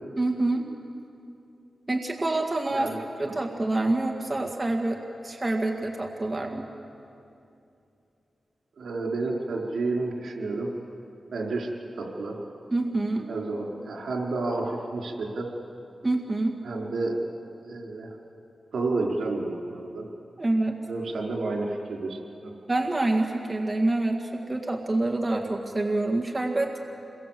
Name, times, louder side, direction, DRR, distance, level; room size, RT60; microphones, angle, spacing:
voice 1, 0.2-0.7 1.9-2.9 3.2-6.7 12.7-13.3 16.0-16.6 20.4-20.8 22.7-26.8, right 2 dB, 20° right, 1 dB, 1.8 m, -26 dB
voice 2, 8.8-10.7 11.3-11.7 12.0-12.4 13.3-15.5 16.6-17.2 17.7-18.1 18.7-20.0 20.9-22.5, right 3 dB, 80° right, -1 dB, 4.8 m, -30 dB
27.0 x 23.0 x 7.7 m, 2.7 s
wide cardioid pair, 130°, 0 cm